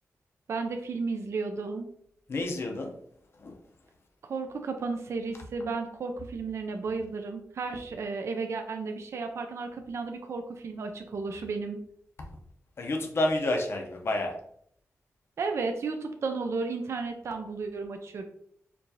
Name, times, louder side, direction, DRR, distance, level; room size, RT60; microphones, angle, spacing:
voice 1, 0.5-1.9 4.2-11.8 15.4-18.2, right 4 dB, 60° right, 0.4 m, -33 dB
voice 2, 2.3-3.0 3.3-3.6 12.8-14.4, left 1 dB, 50° left, 0.6 m, -29 dB
4.4 x 2.5 x 2.7 m
wide cardioid pair, 115°, 5 cm